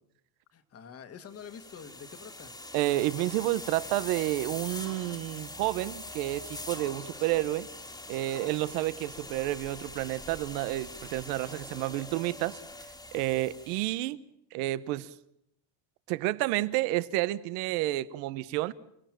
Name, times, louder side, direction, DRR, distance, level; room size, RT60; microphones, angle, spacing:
voice 1, 0.5-2.5 8.2-8.5, left 7 dB, 30° left, 1.7 m, -47 dB
sound 1, 1.3-14.0, left 2 dB, 10° left, 1.9 m, -43 dB
voice 2, 2.7-7.7 8.1-12.6 13.1-14.2 14.5-15.1 16.1-18.7, right 16 dB, 80° right, 1.2 m, -30 dB
29.0 x 17.5 x 7.6 m
cardioid pair, 155°, 50 cm